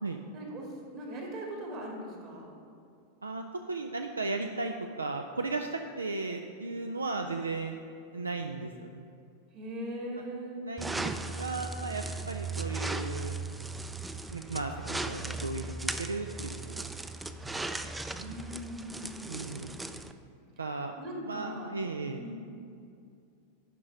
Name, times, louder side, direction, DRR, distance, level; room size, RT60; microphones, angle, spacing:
voice 1, 0.3-2.5 9.5-10.7 18.2-20.0 21.0-21.7 22.1-22.5, equal, 40° right, 0 dB, 2.0 m, -40 dB
voice 2, 3.2-7.8 8.1-9.1 10.6-13.4 14.3-16.9 19.3-19.8 20.6-20.9 21.3-22.2, right 3 dB, 75° right, 5 dB, 0.4 m, -36 dB
sound 1, 10.8-20.1, right 3 dB, 10° right, 0.4 m, -37 dB
10.5 x 5.3 x 4.9 m, 2.5 s
figure-of-eight pair, 90°, 0 cm